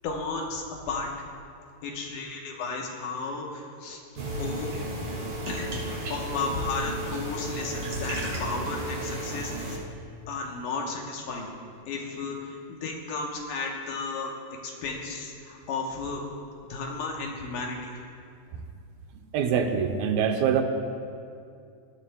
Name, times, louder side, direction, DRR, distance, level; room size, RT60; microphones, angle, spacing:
voice 1, 0.0-1.1 1.8-4.0 4.4-4.7 5.5-5.7 6.1-9.8 10.3-11.5 11.9-14.3 14.6-16.2 16.7-17.9, left 4 dB, 70° left, 0 dB, 2.4 m, -33 dB
sound 1, 4.1-9.8, right 1 dB, 45° right, 1.8 m, -33 dB
voice 2, 19.3-20.6, right 7 dB, 85° right, 5 dB, 2.7 m, -24 dB
20.5 x 12.5 x 2.2 m, 2.4 s
omnidirectional pair, 4.2 m